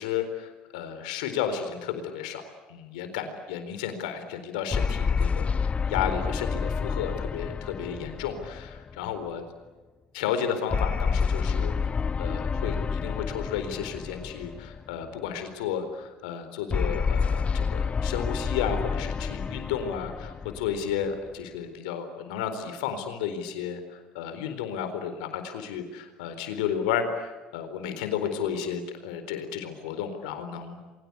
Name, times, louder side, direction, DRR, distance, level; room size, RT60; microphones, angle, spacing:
voice 1, 0.0-2.4 2.7-9.4 10.1-11.7 12.2-30.8, left 8 dB, 75° left, 8 dB, 4.1 m, -32 dB
sound 1, 4.7-9.3 10.7-15.1 16.7-21.3, left 5 dB, 30° left, 0.8 m, -29 dB
29.0 x 23.0 x 8.4 m, 1.3 s
hypercardioid pair, 65°, 4 cm